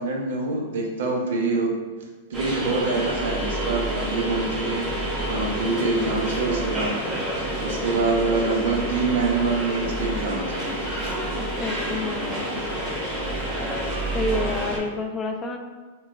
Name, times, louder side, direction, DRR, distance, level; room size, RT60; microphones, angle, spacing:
voice 1, 0.0-1.7 2.3-4.9 5.3-7.0 7.6-10.5, right 3 dB, 70° right, 0 dB, 0.7 m, -25 dB
sound 1, 2.3-14.8, right 1 dB, 25° right, 1.1 m, -28 dB
voice 2, 11.3-12.5 14.1-15.6, left 2 dB, 20° left, 4 dB, 0.3 m, -29 dB
4.3 x 2.3 x 2.5 m, 1.3 s
hypercardioid pair, 125°, 0 cm